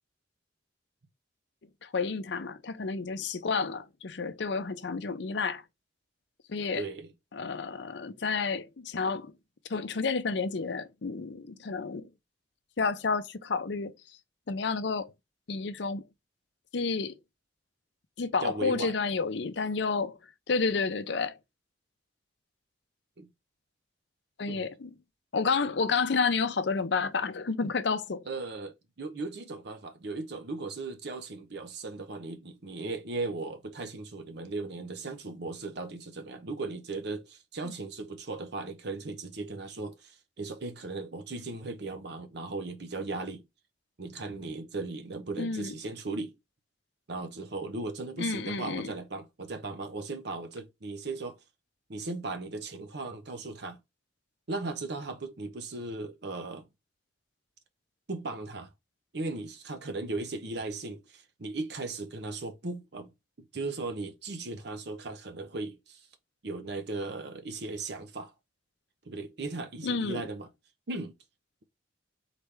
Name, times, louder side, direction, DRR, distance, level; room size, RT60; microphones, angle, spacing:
voice 1, 1.8-5.6 6.5-6.8 7.3-9.3 9.7-12.1 12.8-13.9 14.5-15.1 15.5-16.1 16.7-17.2 18.2-20.2 20.5-21.4 24.4-24.9 25.3-28.2 37.6-37.7 45.4-45.7 48.2-48.9 69.8-70.2, left 4 dB, 65° left, 0.6 m, -30 dB
voice 2, 6.7-7.1 18.4-18.9 23.2-23.3 24.5-24.6 28.3-43.4 44.0-46.3 47.1-51.4 51.9-53.8 54.5-56.7 58.1-58.7 59.1-63.1 63.5-66.1 66.4-68.3 69.1-70.5 70.9-71.1, right 3 dB, 60° right, 0.7 m, -37 dB
4.1 x 3.3 x 3.3 m
head